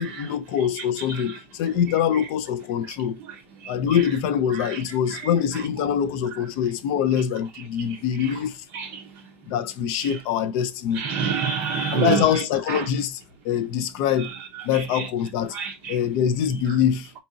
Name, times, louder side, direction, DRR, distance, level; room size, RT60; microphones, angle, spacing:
voice 1, 0.0-3.2 3.7-8.6 9.5-11.0 11.9-14.3 14.6-15.6 15.9-17.1, left 8 dB, 35° left, 0.3 m, -24 dB
voice 2, 10.9-12.2 12.7-12.9 14.7-15.1 15.5-16.0, right 6 dB, 30° right, 0.5 m, -27 dB
3.8 x 2.7 x 2.6 m
supercardioid pair, 165°, 7 cm